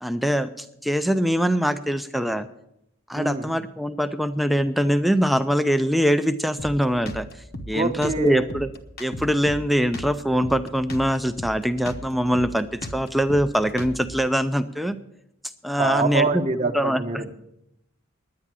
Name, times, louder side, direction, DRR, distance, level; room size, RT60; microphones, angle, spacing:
voice 1, 0.0-2.5 3.1-7.3 7.7-8.7 9.0-15.0 15.6-16.4 16.7-17.0, equal, ahead, 10 dB, 0.4 m, -23 dB
voice 2, 3.1-3.6 7.7-8.5 15.8-17.3, right 3 dB, 30° right, 5 dB, 0.9 m, -25 dB
Drum kit, 6.6-14.3, equal, 45° left, 0.9 m, -37 dB
10.5 x 9.7 x 7.4 m, 0.82 s
head